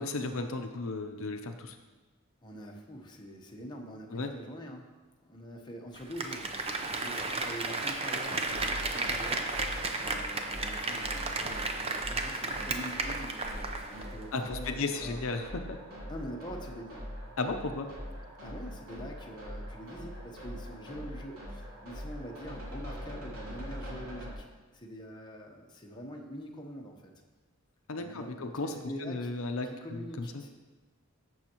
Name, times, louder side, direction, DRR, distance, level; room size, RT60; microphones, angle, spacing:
voice 1, 0.0-1.8 4.1-4.3 14.3-15.8 17.4-17.9 27.9-30.4, left 3 dB, 70° left, 6 dB, 0.6 m, -35 dB
voice 2, 2.4-4.9 5.2-15.2 16.1-17.0 18.4-24.4 24.7-27.1 27.9-29.3 29.6-30.5, equal, 20° left, 0 dB, 1.0 m, -45 dB
Applause, 6.0-14.2 14.5-14.6, right 3 dB, 30° right, 0.7 m, -34 dB
sound 1, 8.5-24.3, equal, 90° right, 3.0 m, -43 dB
14.5 x 6.4 x 3.0 m, 1.3 s
head